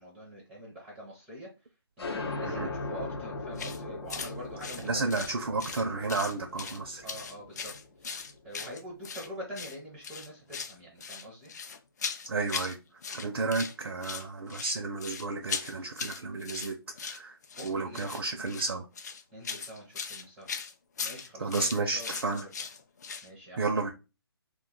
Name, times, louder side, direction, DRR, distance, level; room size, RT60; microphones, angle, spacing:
voice 1, 0.0-1.5 2.0-5.3 7.0-8.1 8.4-11.5 17.6-18.2 19.3-20.5 21.0-22.5 23.2-23.6, equal, 5° right, 0.5 m, -45 dB
sound 1, 2.0-9.3, left 3 dB, 80° left, 0.7 m, -40 dB
sound 2, 3.6-3.8 4.1-4.3 4.6-5.8 6.1-6.8 7.1-9.3 9.5-9.8 10.0-10.8 11.0-12.8 13.0-13.7 14.0-23.3, left 6 dB, 45° left, 0.4 m, -38 dB
voice 2, 4.8-7.1 12.3-12.8 13.1-16.8 17.0-17.4 17.6-18.9 21.4-22.5 23.6-23.9, right 3 dB, 80° right, 0.5 m, -32 dB
2.4 x 2.2 x 3.7 m
hypercardioid pair, 155°, 13 cm